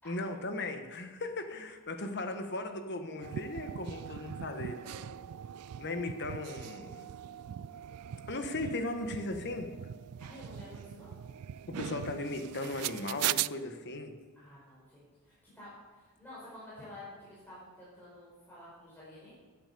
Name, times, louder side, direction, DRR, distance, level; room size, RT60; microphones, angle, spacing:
voice 1, 0.0-4.8 5.8-7.1 8.3-9.7 11.7-14.2, left 2 dB, 50° left, 7 dB, 1.4 m, -37 dB
sound 1, 3.2-13.5, right 11 dB, 90° right, 0.4 m, -40 dB
voice 2, 10.2-11.2 14.3-19.3, left 1 dB, 10° left, -9 dB, 5.0 m, -50 dB
15.5 x 10.0 x 6.9 m, 1.3 s
head